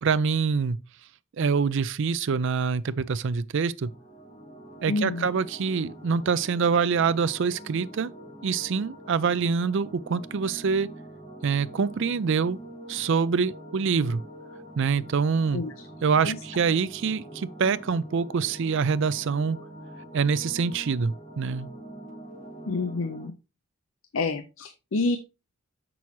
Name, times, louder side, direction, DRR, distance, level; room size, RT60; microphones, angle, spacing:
voice 1, 0.0-0.8 1.4-3.9 4.8-8.1 8.4-10.9 11.4-12.6 12.9-14.2 14.8-15.6 16.0-19.6 20.1-21.7, right 5 dB, 55° right, 0.4 m, -25 dB
sound 1, 3.8-23.3, right 1 dB, 35° left, 4.7 m, -44 dB
voice 2, 4.9-5.3 15.5-15.7 16.2-16.4 22.7-23.4 24.1-25.2, left 3 dB, 65° left, 0.6 m, -28 dB
7.0 x 6.1 x 3.1 m
head